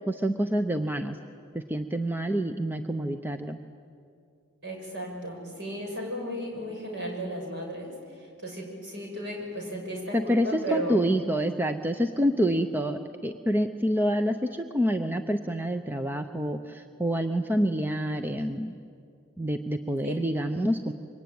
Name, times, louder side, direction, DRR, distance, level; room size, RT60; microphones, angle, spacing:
voice 1, 0.1-1.2 1.5-3.6 10.1-18.7 19.4-20.9, equal, 10° right, 7 dB, 0.7 m, -27 dB
voice 2, 4.6-7.9 8.2-11.0 20.0-20.1, equal, 55° right, 1 dB, 6.9 m, -35 dB
26.5 x 23.5 x 9.4 m, 2.4 s
head